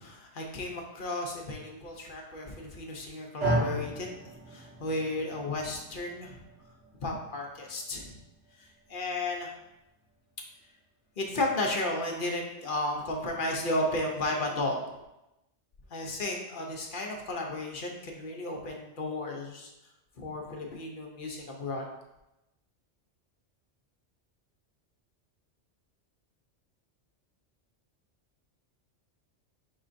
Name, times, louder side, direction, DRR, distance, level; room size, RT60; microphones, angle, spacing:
voice 1, 0.0-6.4 7.0-8.1 8.6-9.5 11.2-14.9 15.9-19.7 20.2-21.9, left 2 dB, 55° left, 1 dB, 0.8 m, -34 dB
sound 1, 3.4-11.7, right 1 dB, 75° right, 1.8 m, -37 dB
5.3 x 3.8 x 2.5 m, 0.92 s
omnidirectional pair, 1.2 m